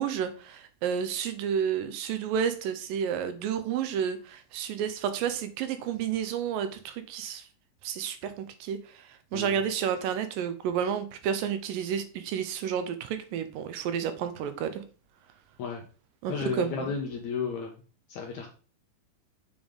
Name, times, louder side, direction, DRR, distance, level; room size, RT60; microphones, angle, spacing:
voice 1, 0.0-7.4 7.8-9.1 9.3-14.8 16.2-16.9, right 8 dB, 80° right, 9 dB, 2.2 m, -31 dB
voice 2, 16.3-17.8 18.1-18.5, left 6 dB, 75° left, 2 dB, 1.7 m, -33 dB
7.0 x 3.7 x 5.1 m, 0.38 s
omnidirectional pair, 4.2 m